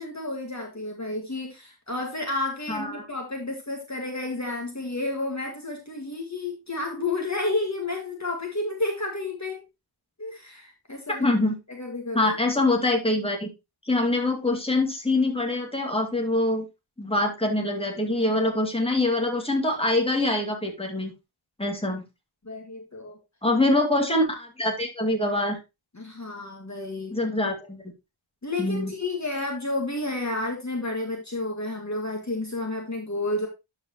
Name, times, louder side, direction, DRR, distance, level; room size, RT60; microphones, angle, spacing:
voice 1, 0.0-9.6 10.2-11.3 11.7-12.3 22.4-23.2 25.9-27.2 28.4-33.5, left 2 dB, 35° left, 1 dB, 1.9 m, -31 dB
voice 2, 2.7-3.0 11.2-11.6 12.1-13.5 13.9-16.6 17.0-21.1 21.6-22.0 23.4-25.6 27.1-27.9 28.6-28.9, left 2 dB, 10° left, 2 dB, 2.2 m, -24 dB
12.0 x 4.8 x 2.9 m, 0.24 s
wide cardioid pair, 55°, 50 cm